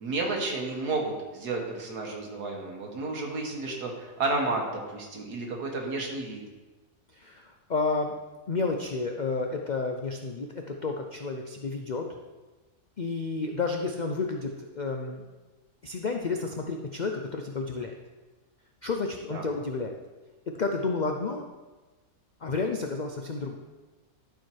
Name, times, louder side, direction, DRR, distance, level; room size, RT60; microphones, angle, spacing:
voice 1, 0.0-6.4 19.3-19.5, right 3 dB, 90° right, 1 dB, 2.0 m, -31 dB
voice 2, 7.2-8.1 8.5-12.1 13.0-15.2 15.8-17.9 18.8-20.0 20.6-21.5 22.4-23.6, left 4 dB, 75° left, 3 dB, 0.4 m, -31 dB
11.5 x 4.5 x 4.6 m, 1.2 s
omnidirectional pair, 1.6 m